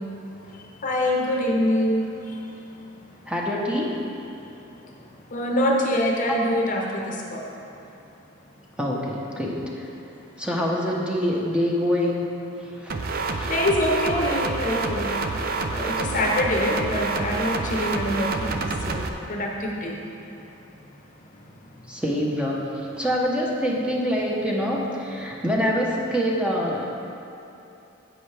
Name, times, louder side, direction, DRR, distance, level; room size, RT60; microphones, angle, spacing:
voice 1, 0.4-3.3 4.3-7.5 13.4-15.4 15.7-20.1 20.4-20.8 21.3-21.9, left 1 dB, 40° left, 0 dB, 0.8 m, -26 dB
voice 2, 3.3-4.0 8.8-9.8 10.4-12.2 12.8-13.5 21.9-22.6 23.0-26.9, equal, 5° right, -3 dB, 0.9 m, -25 dB
sound 1, 12.9-19.1, right 3 dB, 45° right, 0.5 m, -27 dB
10.0 x 8.0 x 3.4 m, 2.9 s
head